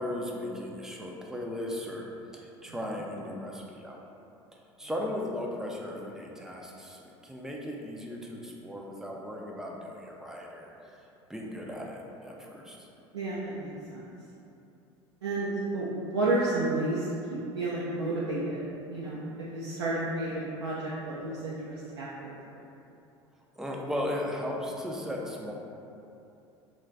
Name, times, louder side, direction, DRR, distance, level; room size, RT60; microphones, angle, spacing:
voice 1, 0.0-2.1 2.3-4.0 4.8-11.0 11.3-12.9 23.6-25.5, left 1 dB, 5° right, -2 dB, 0.4 m, -36 dB
voice 2, 13.1-14.1 15.2-17.1 17.5-18.6 18.9-22.3, right 2 dB, 75° right, -7 dB, 0.4 m, -31 dB
2.2 x 2.2 x 3.7 m, 2.8 s
figure-of-eight pair, 70°, 14 cm